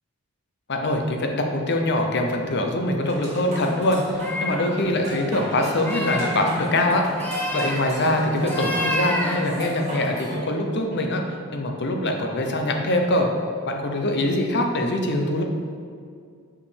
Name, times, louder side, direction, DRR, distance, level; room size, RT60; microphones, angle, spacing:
voice 1, 0.7-7.0 7.5-11.2 11.5-13.3 13.6-15.4, left 1 dB, 50° left, 3 dB, 0.8 m, -23 dB
sound 1, 3.0-10.4, equal, 30° right, 2.0 m, -33 dB
sound 2, 4.0-4.7 5.7-6.3 7.2-7.8 8.4-9.3, left 1 dB, 10° left, 0.8 m, -28 dB
5.8 x 4.9 x 6.4 m, 2.2 s
head